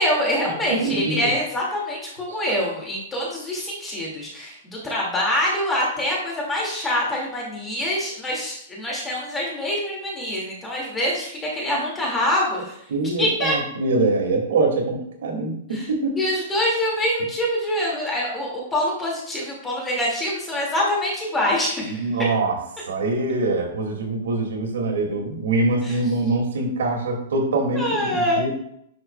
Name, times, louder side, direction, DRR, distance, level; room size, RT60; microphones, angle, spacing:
voice 1, 0.0-12.8 13.2-13.5 15.7-15.9 16.2-22.0 25.8-26.0 27.8-28.5, left 1 dB, 10° left, -3 dB, 2.1 m, -25 dB
voice 2, 0.7-1.3 2.3-2.4 12.9-16.2 21.8-22.6 22.9-28.5, right 2 dB, 80° right, 1 dB, 2.1 m, -24 dB
11.0 x 5.6 x 2.2 m, 0.73 s
hypercardioid pair, 150°, 0 cm